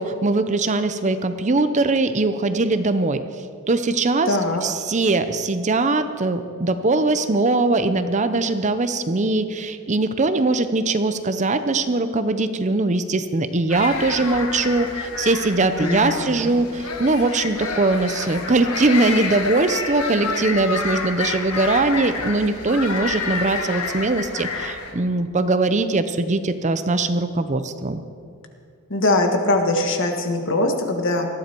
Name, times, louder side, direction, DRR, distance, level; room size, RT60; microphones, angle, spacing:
voice 1, 0.0-3.2 3.7-4.3 4.6-28.0, right 2 dB, 30° right, 10 dB, 0.6 m, -21 dB
voice 2, 4.2-4.6 15.8-16.5 28.9-31.3, left 2 dB, 55° left, 4 dB, 1.7 m, -22 dB
sound 1, 13.7-24.9, left 4 dB, 80° left, 1.7 m, -29 dB
19.5 x 13.5 x 4.6 m, 2.2 s
head